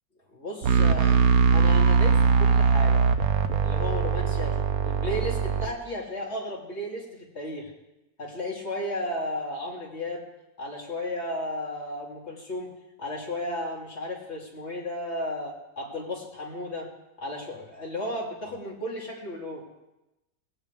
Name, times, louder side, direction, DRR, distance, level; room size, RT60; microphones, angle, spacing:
voice 1, 0.3-3.1 3.6-7.7 8.2-10.2 10.6-12.7 13.0-16.9 17.2-19.6, left 1 dB, 45° left, -3 dB, 3.4 m, -34 dB
sound 1, 0.6-5.7, right 5 dB, 75° right, 1.3 m, -21 dB
19.0 x 17.0 x 3.5 m, 0.94 s
omnidirectional pair, 1.6 m